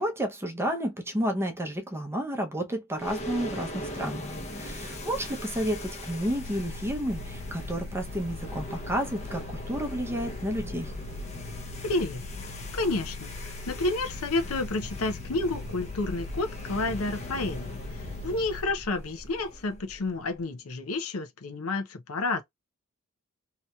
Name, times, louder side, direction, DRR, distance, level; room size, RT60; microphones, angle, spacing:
voice 1, 0.0-4.2 4.5-10.9, equal, 10° right, 0.6 m, -31 dB
sound 1, 3.0-20.4, equal, 30° left, 0.7 m, -39 dB
sound 2, 6.3-18.7, left 9 dB, 85° right, 0.8 m, -44 dB
voice 2, 11.8-12.2 12.7-22.4, left 2 dB, 75° left, 0.6 m, -30 dB
2.9 x 2.8 x 2.3 m
head